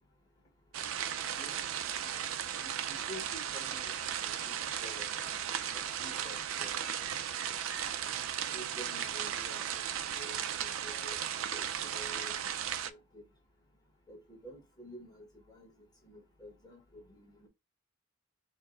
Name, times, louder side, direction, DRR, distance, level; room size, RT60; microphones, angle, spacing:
sound 1, 0.7-12.9, right 9 dB, 85° right, 0.4 m, -36 dB
voice 1, 1.4-1.7 2.0-3.9 4.2-4.5 4.8-6.8 8.5-9.8 10.2-11.2 11.5-12.5 12.9-13.2 14.1-15.7 16.0-17.5, equal, 20° left, 1.2 m, -50 dB
4.5 x 2.1 x 3.7 m
head